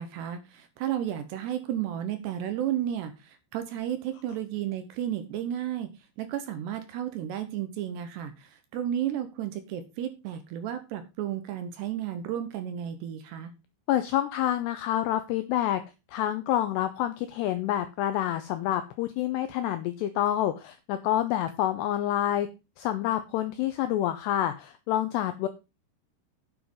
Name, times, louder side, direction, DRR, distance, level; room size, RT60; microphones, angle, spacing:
voice 1, 0.0-5.9 6.2-13.5, right 10 dB, 75° right, 9 dB, 2.7 m, -33 dB
voice 2, 13.9-15.8 16.1-22.5 22.8-25.5, left 12 dB, 90° left, 10 dB, 2.4 m, -28 dB
9.4 x 7.0 x 5.4 m, 0.28 s
omnidirectional pair, 5.7 m